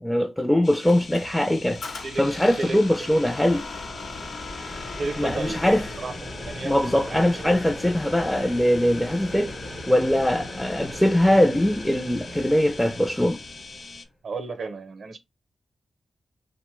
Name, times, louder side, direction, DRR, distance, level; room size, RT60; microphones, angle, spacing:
voice 1, 0.0-3.6 5.2-5.8 6.6-9.5 9.9-13.4, left 1 dB, 10° left, 0.4 m, -22 dB
sound 1, 0.6-14.1, left 4 dB, 60° left, 0.5 m, -43 dB
Squeak, 0.9-6.1, left 3 dB, 80° left, 0.9 m, -39 dB
voice 2, 2.6-3.1 5.0-6.2 6.4-7.5 14.2-15.2, right 3 dB, 70° right, 0.6 m, -33 dB
sound 2, 2.7-14.0, left 1 dB, 40° left, 0.9 m, -39 dB
2.8 x 2.1 x 3.1 m
cardioid pair, 50°, 0 cm